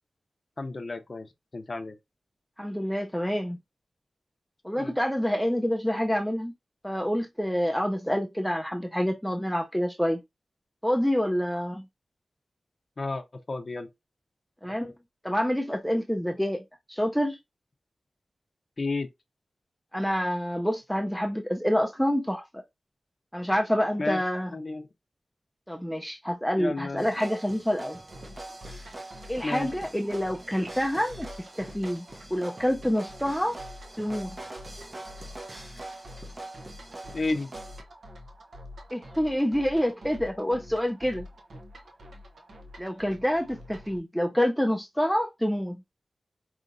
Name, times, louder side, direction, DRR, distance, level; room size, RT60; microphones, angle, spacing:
voice 1, 0.6-2.0 4.8-4.9 13.0-13.9 18.8-19.1 24.0-24.2 24.5-24.8 26.6-27.0 29.4-29.7 37.1-37.5, left 3 dB, 45° left, 0.6 m, -32 dB
voice 2, 2.6-3.6 4.6-6.5 6.8-10.2 10.8-11.8 14.6-14.9 15.2-16.6 16.9-17.4 19.9-22.6 23.3-24.5 25.7-28.0 29.3-32.0 32.3-33.6 34.0-34.4 38.9-41.3 42.8-45.8, equal, ahead, 0.5 m, -27 dB
sound 1, 27.0-37.8, right 2 dB, 35° right, 0.7 m, -44 dB
sound 2, 28.1-44.0, left 1 dB, 80° right, 0.8 m, -47 dB
5.2 x 2.8 x 2.5 m
wide cardioid pair, 90°, 0 cm